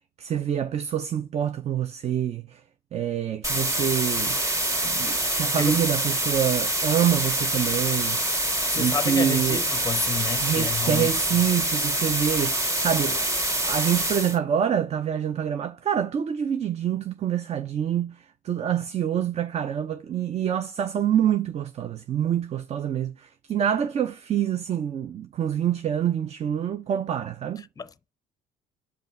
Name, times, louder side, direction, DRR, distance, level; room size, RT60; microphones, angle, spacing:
voice 1, 0.2-2.6 2.9-4.4 4.8-8.2 8.8-9.6 10.4-13.2 13.6-27.7, right 9 dB, 40° right, 0.5 m, -26 dB
sound 1, 3.4-14.4, right 1 dB, 20° right, 1.7 m, -26 dB
voice 2, 8.7-11.4 27.8-27.9, left 6 dB, 20° left, 0.6 m, -31 dB
5.4 x 5.0 x 4.6 m
cardioid pair, 110°, 17 cm